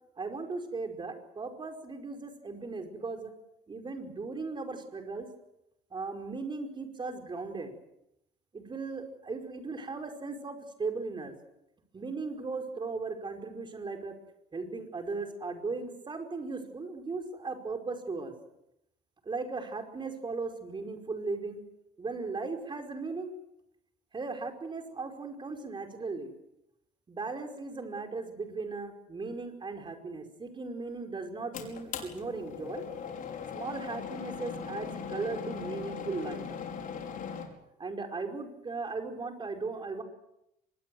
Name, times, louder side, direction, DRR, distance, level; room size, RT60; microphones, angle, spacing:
voice 1, 0.2-3.3 3.7-5.3 5.9-7.7 8.5-11.3 11.9-14.1 14.5-18.3 19.2-21.6 22.0-23.3 24.1-26.3 27.1-32.9 33.5-36.4 37.8-40.0, right 3 dB, 30° right, 4 dB, 5.0 m, -37 dB
sound 1, 31.5-37.5, left 7 dB, 55° left, 5.4 m, -39 dB
25.0 x 21.5 x 7.8 m, 0.85 s
cardioid pair, 110°, 17 cm